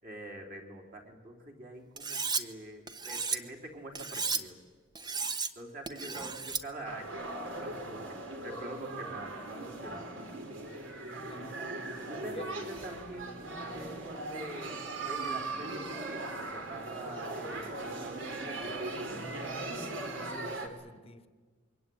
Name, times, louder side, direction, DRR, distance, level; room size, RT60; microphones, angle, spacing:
voice 1, 0.0-4.6 5.6-10.2 11.4-11.6 12.1-14.8 15.1-19.3, right 1 dB, 45° right, 1 dB, 3.7 m, -45 dB
Cutlery silverware, 2.0-2.4 2.9-3.4 3.9-4.4 4.9-5.5 5.9-6.6, right 5 dB, 20° right, 1.1 m, -33 dB
sound 1, 6.8-20.7, right 2 dB, 70° right, 3.2 m, -39 dB
voice 2, 11.3-11.6 12.3-12.5 20.1-21.3, left 2 dB, 30° left, 11 dB, 1.2 m, -47 dB
25.0 x 23.0 x 9.4 m, 1.5 s
head